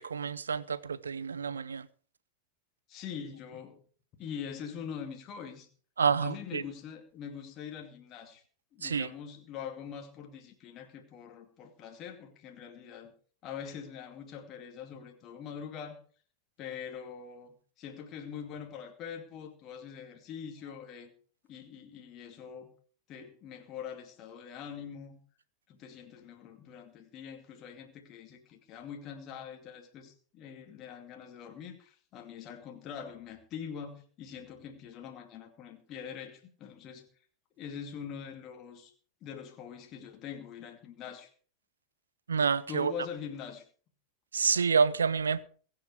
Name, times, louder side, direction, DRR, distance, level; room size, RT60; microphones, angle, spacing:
voice 1, 0.0-1.9 6.0-6.6 8.8-9.1 42.3-42.9 44.3-45.4, right 6 dB, 70° right, 0.7 m, -28 dB
voice 2, 2.9-3.8 4.2-5.7 6.2-8.4 8.7-13.1 13.4-16.0 16.6-21.1 21.5-22.7 23.1-25.2 25.7-37.1 37.6-38.9 39.2-41.3 42.7-43.6, left 7 dB, 35° left, 2.3 m, -43 dB
22.0 x 7.7 x 4.7 m
figure-of-eight pair, 90°, 0 cm